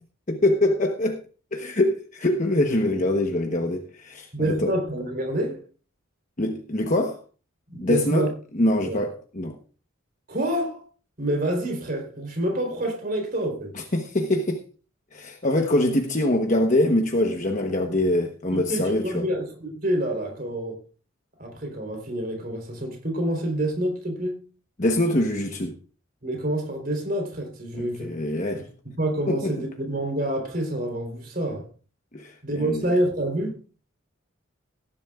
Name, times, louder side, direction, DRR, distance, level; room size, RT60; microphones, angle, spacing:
voice 1, 0.3-1.2 1.5-4.7 6.4-7.2 7.8-8.3 8.5-9.6 13.8-14.6 15.1-19.3 24.8-25.8 28.0-28.7 29.3-29.5 32.1-32.9, left 1 dB, 35° left, 1.1 m, -24 dB
voice 2, 4.3-5.6 7.7-8.3 8.9-9.0 10.3-10.8 11.2-13.7 18.5-20.8 21.4-24.4 26.2-28.2 28.8-31.7 32.4-33.6, right 1 dB, 45° right, 3.8 m, -27 dB
18.5 x 11.0 x 2.4 m
head